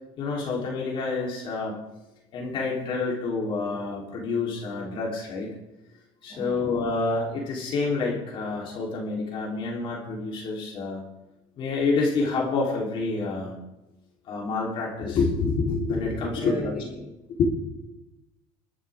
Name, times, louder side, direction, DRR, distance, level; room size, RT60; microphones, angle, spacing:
voice 1, 0.2-1.8 2.3-5.5 6.2-11.0 11.6-13.5 14.3-16.8 17.4-17.5, left 3 dB, 50° left, -3 dB, 3.6 m, -28 dB
voice 2, 6.3-6.8 16.3-17.1, equal, 5° right, -3 dB, 6.5 m, -37 dB
22.5 x 11.0 x 3.7 m, 0.93 s
cardioid pair, 135°, 11 cm